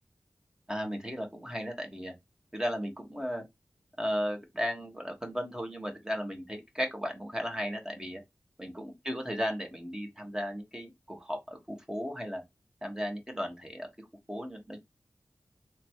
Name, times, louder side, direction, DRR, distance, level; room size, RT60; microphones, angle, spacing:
voice 1, 0.7-2.1 2.5-3.4 4.0-8.2 8.6-12.4 12.8-14.8, equal, 10° right, 1.4 m, -35 dB
3.3 x 3.1 x 4.5 m
wide cardioid pair, 75°, 6 cm